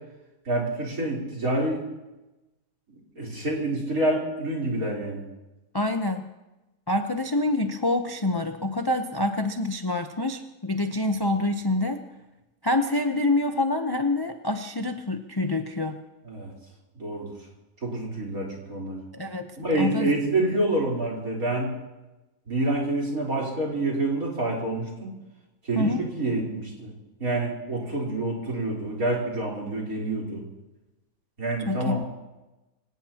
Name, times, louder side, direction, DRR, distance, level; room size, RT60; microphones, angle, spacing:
voice 1, 0.4-1.8 2.9-5.2 16.3-16.5 17.0-17.3 17.8-19.0 19.6-21.7 22.5-25.1 25.6-26.9 27.2-30.4 31.4-32.0, right 2 dB, 60° right, -3 dB, 4.4 m, -27 dB
voice 2, 5.7-6.3 6.9-12.0 12.6-16.0 19.1-20.1 25.8-26.0 31.7-32.0, left 2 dB, 30° left, 6 dB, 0.4 m, -26 dB
25.0 x 17.5 x 2.9 m, 1.0 s
omnidirectional pair, 1.7 m